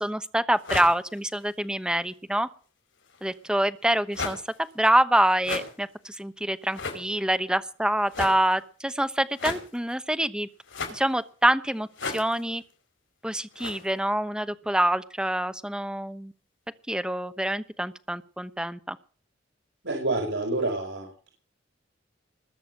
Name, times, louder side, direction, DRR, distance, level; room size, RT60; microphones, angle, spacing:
voice 1, 0.0-2.5 3.2-4.4 4.7-10.5 10.9-12.6 13.2-16.3 16.9-19.0, right 1 dB, 5° right, 11 dB, 0.9 m, -26 dB
sound 1, 0.6-1.5 3.0-3.5 4.1-4.8 5.3-5.9 6.6-7.2 8.1-8.6 9.3-9.9 10.6-11.3 11.9-12.7 13.5-13.9, left 4 dB, 90° left, 5.0 m, -36 dB
voice 2, 19.8-21.3, right 2 dB, 75° right, 2 dB, 4.7 m, -28 dB
20.5 x 7.1 x 7.6 m, 0.41 s
head